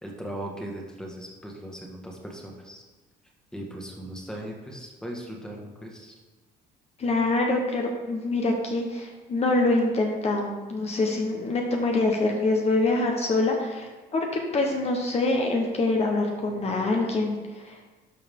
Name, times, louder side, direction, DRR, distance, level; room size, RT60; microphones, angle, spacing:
voice 1, 0.0-2.8 3.5-6.1, right 1 dB, 5° left, 0 dB, 1.6 m, -38 dB
voice 2, 7.0-17.8, left 2 dB, 40° left, 1 dB, 1.1 m, -25 dB
12.0 x 4.7 x 3.6 m, 1.3 s
cardioid pair, 110°, 17 cm